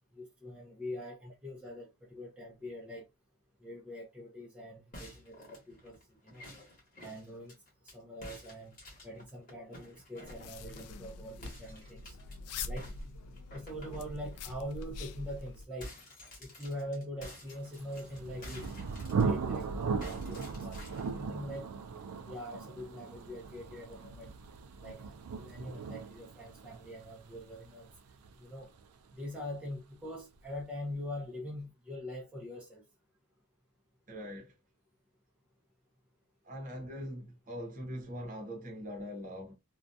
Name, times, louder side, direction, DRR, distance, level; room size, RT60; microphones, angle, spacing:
voice 1, 0.1-3.1 3.6-6.5 7.0-7.6 7.8-8.8 9.0-12.2 12.6-12.9 13.5-15.9 16.4-18.6 19.2-20.8 21.1-21.7 22.2-24.3 24.8-27.9 28.4-28.7 29.1-32.8, left 1 dB, 5° right, 0.4 m, -43 dB
sound 1, 4.9-8.0 8.2-11.0 11.4-12.4 12.8-14.5 14.9-15.1 15.4-19.6 20.0-21.2, left 1 dB, 40° left, 1.1 m, -51 dB
sound 2, 10.2-15.7, left 3 dB, 80° left, 0.3 m, -44 dB
Thunder, 17.8-29.3, right 5 dB, 80° right, 0.4 m, -38 dB
voice 2, 34.1-34.5 36.4-39.5, equal, 35° right, 0.8 m, -42 dB
2.3 x 2.2 x 2.6 m
head